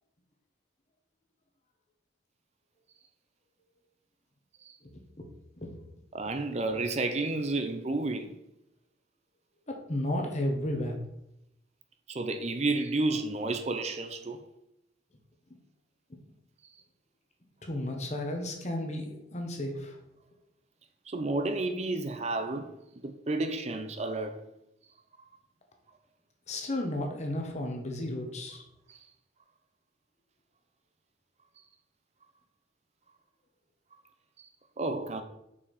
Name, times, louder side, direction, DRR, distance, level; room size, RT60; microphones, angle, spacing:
voice 1, 6.1-8.4 12.1-14.4 21.1-22.7 23.0-24.4 28.9-29.0 34.4-34.5 34.8-35.2, right 2 dB, 35° right, 0.5 m, -31 dB
voice 2, 9.7-11.0 17.6-20.0 26.5-28.6, left 1 dB, 40° left, 1.2 m, -33 dB
5.6 x 4.7 x 4.8 m
head